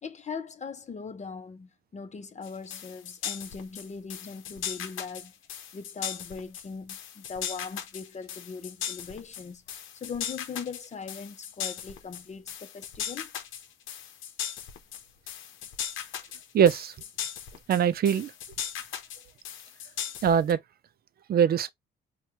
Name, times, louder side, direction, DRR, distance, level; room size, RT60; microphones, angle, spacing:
voice 1, 0.0-5.3 5.7-13.3, left 5 dB, 35° left, 0.7 m, -40 dB
sound 1, 2.4-20.5, left 9 dB, 80° left, 0.7 m, -38 dB
voice 2, 16.5-16.9 17.7-18.3 20.2-20.6 21.3-21.7, right 8 dB, 50° right, 0.4 m, -22 dB
4.4 x 2.2 x 2.9 m
cardioid pair, 90°, 20 cm